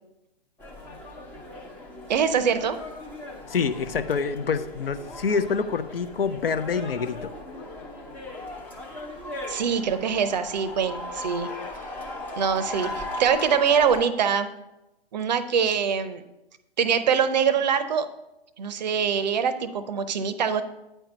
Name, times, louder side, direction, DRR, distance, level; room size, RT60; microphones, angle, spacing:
sound 1, 0.6-14.0, left 2 dB, 5° left, 0.5 m, -38 dB
voice 1, 2.1-2.8 9.5-11.5 12.4-14.5 15.1-16.2 16.8-18.1 18.6-20.6, right 7 dB, 45° right, 13 dB, 0.6 m, -24 dB
voice 2, 3.5-7.3, left 5 dB, 70° left, 11 dB, 0.7 m, -26 dB
9.1 x 4.5 x 5.2 m, 0.94 s
figure-of-eight pair, 125°, 30 cm